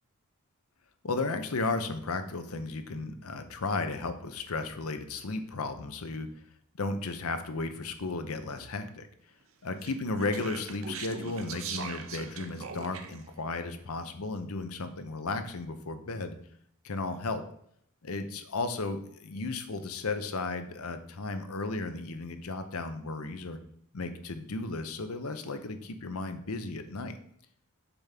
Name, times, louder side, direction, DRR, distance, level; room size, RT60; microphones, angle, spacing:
voice 1, 1.0-6.3 6.8-9.1 9.6-16.3 16.8-17.4 18.0-23.6 23.9-27.2, left 3 dB, 85° left, 9 dB, 0.8 m, -34 dB
Speech, 9.8-13.3, right 5 dB, 70° right, 0.8 m, -40 dB
6.9 x 3.6 x 5.8 m, 0.68 s
head